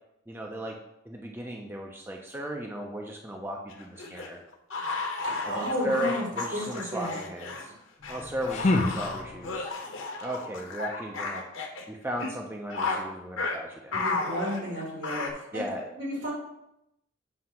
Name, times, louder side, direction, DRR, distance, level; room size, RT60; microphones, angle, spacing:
voice 1, 0.3-0.8 1.0-4.4 5.4-7.7 8.1-9.7 10.2-11.4 11.9-14.2 15.5-15.9, equal, 10° right, 0 dB, 0.5 m, -36 dB
sound 1, 3.7-7.6 8.0-11.8 12.2-12.3 12.7-13.1 13.4-13.6 13.9-15.3, left 3 dB, 90° left, 1.0 m, -33 dB
voice 2, 5.2-6.2 6.5-7.1 13.9-15.6 16.0-16.3, equal, 75° right, -3 dB, 2.6 m, -32 dB
sound 2, 8.0-9.7, left 2 dB, 35° left, 0.4 m, -29 dB
7.6 x 2.9 x 5.6 m, 0.84 s
head